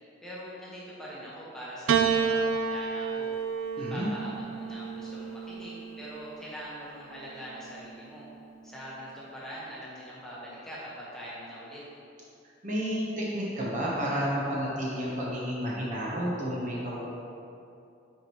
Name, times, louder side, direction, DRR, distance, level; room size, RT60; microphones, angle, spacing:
voice 1, 0.2-3.3 3.6-8.2 8.6-11.8, equal, 5° left, -8 dB, 1.2 m, -43 dB
Piano, 1.9-6.4 7.4-8.2, right 6 dB, 75° right, 0.4 m, -30 dB
voice 2, 3.8-4.1 12.6-17.0, equal, 40° right, -5 dB, 1.0 m, -31 dB
8.5 x 4.5 x 3.1 m, 2.6 s
head